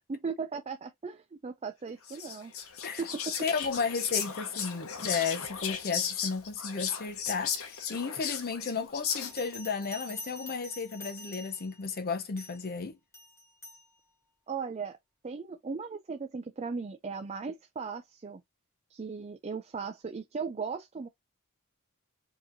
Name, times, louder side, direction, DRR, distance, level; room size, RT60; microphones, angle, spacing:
voice 1, 0.1-2.5 3.0-3.4 14.5-15.0 15.2-18.4 18.9-21.1, right 5 dB, 30° right, 0.4 m, -37 dB
Whispering, 2.1-9.5, left 7 dB, 65° left, 0.9 m, -35 dB
voice 2, 3.4-13.0, left 5 dB, 45° left, 0.6 m, -33 dB
Bell, 9.1-11.8 12.4-12.7 13.1-13.9, left 2 dB, 10° left, 1.6 m, -46 dB
4.7 x 3.0 x 2.6 m
head